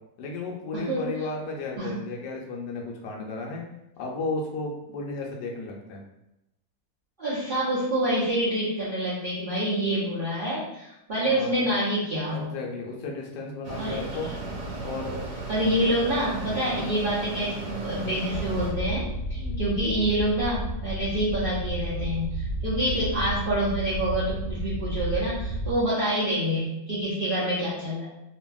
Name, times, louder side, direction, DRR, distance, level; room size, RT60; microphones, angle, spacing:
voice 1, 0.2-3.6 4.0-6.0 11.2-11.7 12.3-14.3 14.8-15.3 19.4-19.6, left 3 dB, 80° left, 0 dB, 1.2 m, -34 dB
voice 2, 0.7-1.1 1.8-1.9 7.2-12.5 13.8-14.0 15.5-28.1, right 1 dB, 55° right, -11 dB, 0.5 m, -27 dB
Mechanisms, 13.6-18.7, right 2 dB, 75° right, 1.3 m, -35 dB
sound 1, 18.3-25.8, right 1 dB, 35° right, 1.0 m, -32 dB
2.8 x 2.6 x 2.2 m, 0.85 s
omnidirectional pair, 1.9 m